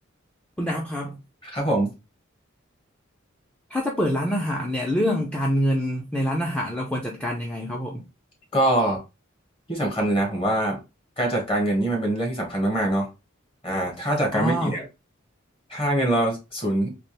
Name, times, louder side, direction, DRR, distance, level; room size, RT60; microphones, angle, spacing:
voice 1, 0.6-1.2 3.7-8.1 14.3-14.8, equal, 5° left, 0.5 m, -26 dB
voice 2, 1.4-1.9 8.5-9.0 9.7-10.8 11.2-13.1 13.6-14.8 15.7-16.9, right 1 dB, 25° left, 1.3 m, -24 dB
3.4 x 2.9 x 3.0 m
head